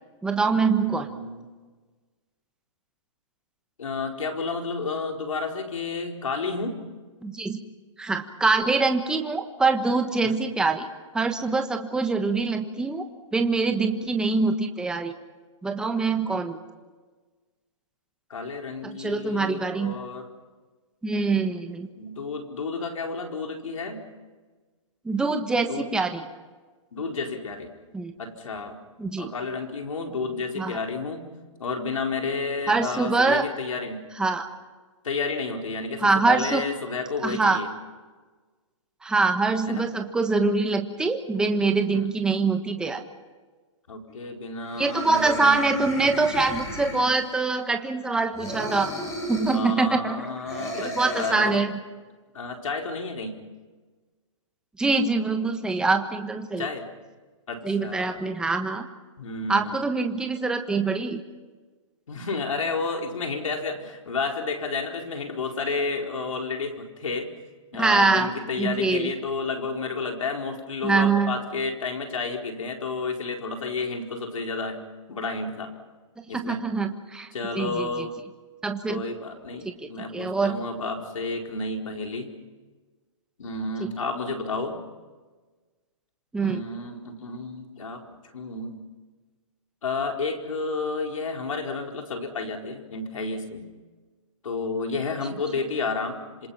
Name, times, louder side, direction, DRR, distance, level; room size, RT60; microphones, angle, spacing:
voice 1, 0.2-1.1 7.2-7.6 8.0-10.9 11.1-13.0 13.3-15.1 15.6-16.6 19.0-19.9 21.0-21.9 25.0-26.2 27.9-28.1 29.0-29.3 30.6-30.8 32.7-33.5 34.2-34.5 36.0-36.6 37.2-37.6 39.0-43.0 44.8-48.9 49.3-50.3 50.7-51.7 54.8-56.7 57.6-58.9 59.5-61.2 67.8-68.3 68.6-69.1 70.8-71.4 76.3-77.3 77.5-77.9 78.6-79.0 80.1-80.6 86.3-86.6, right 3 dB, 5° right, 5 dB, 1.3 m, -24 dB
voice 2, 0.8-1.5 3.8-6.8 10.2-10.3 16.3-16.4 18.3-20.3 21.3-21.4 22.0-24.1 25.6-25.9 26.9-27.7 28.2-28.8 29.2-31.3 31.6-34.0 35.0-37.7 39.7-39.8 41.9-42.1 43.9-45.8 46.9-47.1 49.5-51.6 52.3-53.3 56.6-56.9 57.5-58.2 59.2-59.8 62.1-67.3 67.7-74.8 75.1-75.7 76.3-76.7 77.3-78.1 78.9-82.3 83.4-84.8 86.4-88.0 88.3-88.8 89.8-93.6 94.4-96.5, left 3 dB, 85° left, 2 dB, 4.6 m, -31 dB
sound 1, 44.1-44.2 44.6-47.4 48.3-49.7 50.5-51.3, left 1 dB, 20° left, 7.5 m, -35 dB
27.0 x 26.5 x 5.8 m, 1.3 s
hypercardioid pair, 150°, 17 cm